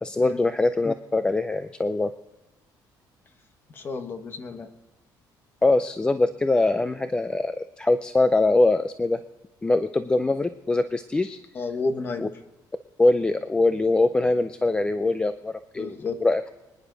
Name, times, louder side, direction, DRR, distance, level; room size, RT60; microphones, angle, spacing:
voice 1, 0.0-2.1 5.6-9.2 9.6-11.4 12.2-12.3 13.0-16.5, left 2 dB, 10° left, 10 dB, 0.4 m, -23 dB
voice 2, 3.7-4.7 11.5-12.3 15.8-16.2, left 3 dB, 25° left, 7 dB, 1.2 m, -31 dB
25.0 x 10.5 x 3.9 m, 1.1 s
cardioid pair, 175°, 8 cm